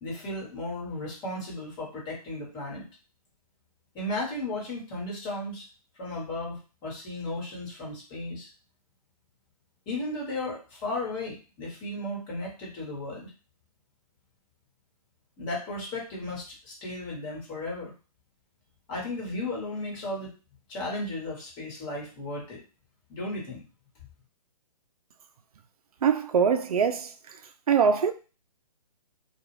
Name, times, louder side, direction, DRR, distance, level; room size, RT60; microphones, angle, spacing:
voice 1, 0.0-2.8 3.9-5.7 6.0-8.5 9.9-13.3 15.4-17.9 18.9-20.3 20.7-22.6 23.1-23.6, left 2 dB, 25° left, 1.3 m, -35 dB
voice 2, 26.0-27.1 27.7-28.1, right 6 dB, 65° right, 0.5 m, -22 dB
2.4 x 2.3 x 3.2 m
hypercardioid pair, 135°, 21 cm